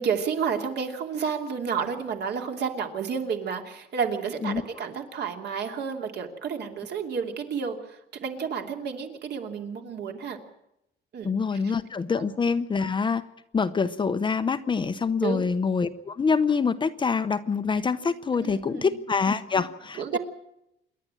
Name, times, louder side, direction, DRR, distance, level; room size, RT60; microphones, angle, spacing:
voice 1, 0.0-10.4 11.1-11.3 12.2-12.3 15.2-15.5 18.4-18.9 19.5-19.7 20.0-20.2, right 6 dB, 55° right, 4 dB, 2.8 m, -31 dB
voice 2, 11.2-13.2 13.5-20.2, left 5 dB, 25° left, 11 dB, 0.8 m, -25 dB
27.5 x 11.5 x 8.9 m, 0.83 s
cardioid pair, 155°, 20 cm